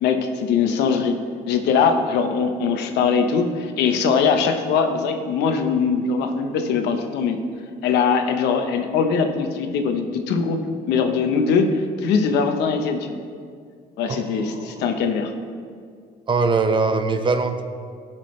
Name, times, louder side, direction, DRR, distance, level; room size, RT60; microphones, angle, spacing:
voice 1, 0.0-1.2 1.5-7.4 7.8-10.6 10.9-13.2 14.0-15.3, left 5 dB, 85° left, 5 dB, 1.0 m, -21 dB
voice 2, 14.1-14.8 16.3-17.6, right 4 dB, 30° right, 8 dB, 0.7 m, -22 dB
17.0 x 6.2 x 3.2 m, 2.1 s
cardioid pair, 110°, 17 cm